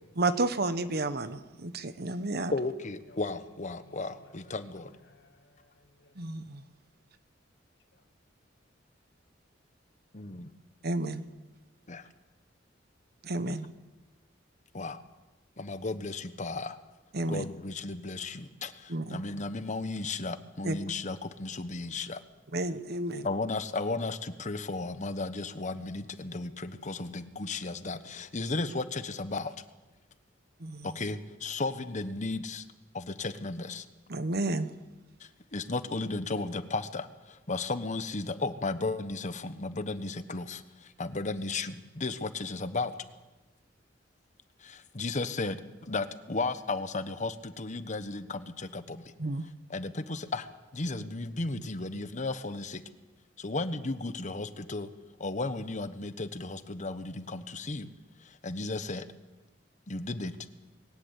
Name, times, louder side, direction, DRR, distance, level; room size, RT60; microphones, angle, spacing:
voice 1, 0.2-2.5 6.2-6.6 10.8-11.2 13.2-13.7 17.1-17.4 18.9-19.2 20.6-20.7 22.5-23.3 30.6-30.9 34.1-34.7 49.2-49.4, right 2 dB, 55° right, 1.2 m, -31 dB
voice 2, 2.5-4.9 10.1-10.5 11.9-12.0 14.7-15.0 15.6-16.8 17.3-18.7 19.1-22.2 23.2-29.5 31.0-32.6 32.9-33.8 35.5-37.1 37.5-40.6 41.0-42.9 44.9-45.6 45.9-49.0 49.7-50.5 50.7-52.8 53.4-54.9 55.2-57.9 58.4-59.0 59.9-60.4, left 3 dB, 40° left, 1.1 m, -34 dB
voice 3, 3.8-6.2 7.9-8.0 18.9-19.1, left 2 dB, 65° left, 2.3 m, -61 dB
21.0 x 18.5 x 8.3 m
head